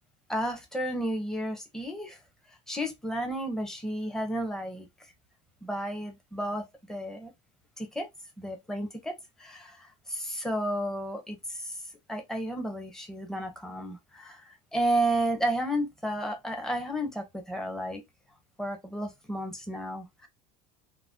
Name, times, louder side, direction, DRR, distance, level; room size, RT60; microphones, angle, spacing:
voice 1, 0.3-2.2 2.7-4.9 5.6-7.3 7.8-8.1 8.4-11.8 12.1-18.0 18.6-20.3, right 1 dB, 5° left, 0.6 m, -32 dB
2.5 x 2.0 x 3.5 m
cardioid pair, 150°, 15 cm